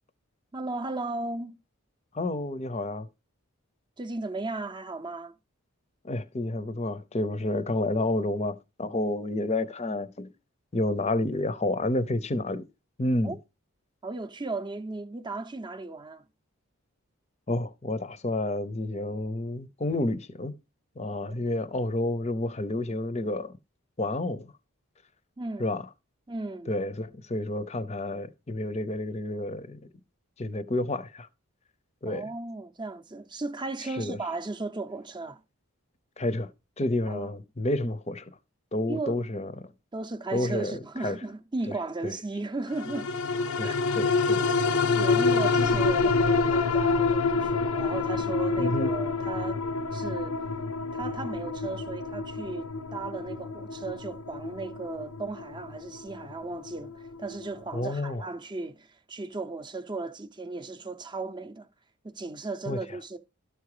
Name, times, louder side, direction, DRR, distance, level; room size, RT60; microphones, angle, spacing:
voice 1, 0.5-1.6 4.0-5.3 13.2-13.4 14.0-16.2 21.3-21.4 23.2-23.3 25.4-25.7 26.3-26.7 32.1-35.4 37.1-37.3 38.9-39.2 39.9-43.2 43.6-43.8 44.8-49.6 49.9-50.4 50.9-61.7 62.0-63.2, right 3 dB, 20° right, 0.6 m, -36 dB
voice 2, 2.1-3.1 6.0-10.3 10.7-12.6 13.0-13.3 17.5-20.5 21.0-23.6 24.0-24.5 25.6-25.9 26.7-29.8 30.4-31.3 32.0-32.3 33.8-34.2 36.2-36.5 36.8-38.3 38.7-39.7 40.3-41.2 42.0-42.1 43.6-44.5 48.6-48.9 57.7-58.2 62.7-62.8, left 1 dB, 30° left, 0.6 m, -30 dB
sound 1, 42.8-57.5 57.9-58.0, left 4 dB, 80° left, 0.7 m, -27 dB
13.0 x 4.8 x 4.9 m
head